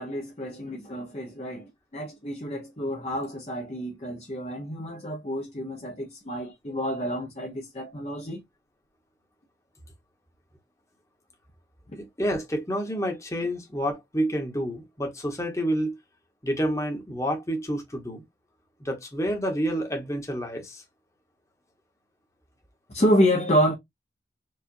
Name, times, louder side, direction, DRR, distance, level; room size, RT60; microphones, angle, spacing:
voice 1, 0.0-8.4 22.9-23.7, equal, 35° left, 0.8 m, -28 dB
voice 2, 12.0-16.0 16.4-18.2 18.8-20.8, equal, 15° left, 1.1 m, -29 dB
4.8 x 2.4 x 2.6 m
head